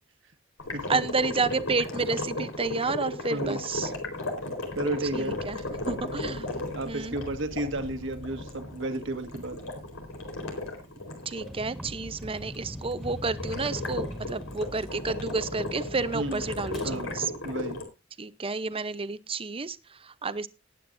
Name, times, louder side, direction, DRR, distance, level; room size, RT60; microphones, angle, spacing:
sound 1, 0.6-11.5 13.4-17.8, left 2 dB, 85° left, 4.2 m, -35 dB
voice 1, 0.9-3.9 5.1-5.6 5.9-6.5 6.9-7.2 11.3-17.3 18.2-20.5, right 4 dB, 30° right, 13 dB, 0.8 m, -30 dB
voice 2, 4.8-5.4 6.7-9.6 16.1-16.4 16.8-17.1 17.4-17.8, right 1 dB, 65° right, 8 dB, 1.7 m, -32 dB
sound 2, 5.3-11.8 12.2-12.3, left 1 dB, 65° left, 3.5 m, -47 dB
Vehicle, 11.4-16.9, equal, ahead, 2.0 m, -40 dB
19.0 x 9.4 x 2.6 m, 0.26 s
head